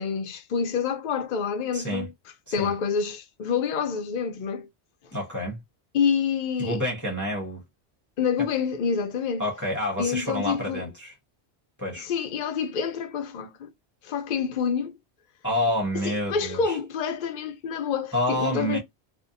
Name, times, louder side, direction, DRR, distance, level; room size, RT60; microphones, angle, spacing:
voice 1, 0.0-2.1 2.5-4.7 5.9-6.8 8.2-9.4 10.0-10.9 12.0-13.7 14.0-15.0 15.9-18.8, left 6 dB, 55° left, 0.6 m, -27 dB
voice 2, 1.7-2.1 2.5-2.7 5.1-5.6 6.6-7.6 9.4-11.1 11.8-12.1 15.4-16.8 18.1-18.8, equal, 20° left, 0.8 m, -28 dB
2.7 x 2.1 x 2.4 m
omnidirectional pair, 1.1 m